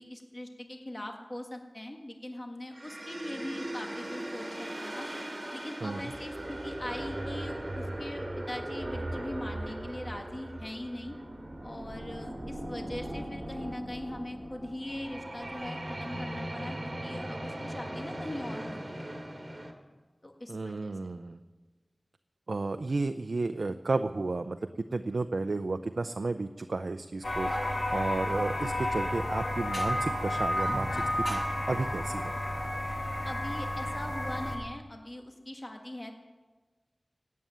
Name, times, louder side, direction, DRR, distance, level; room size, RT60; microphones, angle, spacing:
voice 1, 0.0-5.1 5.5-11.2 11.6-19.1 20.2-21.2 33.2-36.1, left 1 dB, 30° left, 3 dB, 1.7 m, -41 dB
sound 1, 2.7-19.7, right 1 dB, 40° right, 2.7 m, -39 dB
voice 2, 20.5-21.4 22.5-24.6 24.9-31.0 31.3-31.4 31.7-32.3, right 3 dB, 80° right, 8 dB, 0.6 m, -32 dB
sound 2, 27.2-34.6, left 1 dB, 50° left, 2.7 m, -31 dB
16.5 x 8.5 x 9.3 m, 1.3 s
wide cardioid pair, 65°, 0 cm